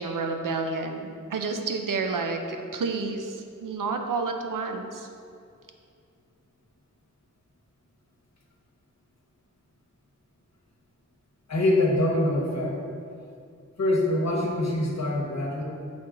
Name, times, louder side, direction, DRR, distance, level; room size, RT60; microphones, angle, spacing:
voice 1, 0.0-5.1, right 4 dB, 80° right, 4 dB, 0.6 m, -30 dB
voice 2, 11.5-12.8 13.8-15.6, left 1 dB, 55° left, -1 dB, 1.0 m, -24 dB
6.0 x 4.3 x 3.7 m, 2.4 s
wide cardioid pair, 85°, 31 cm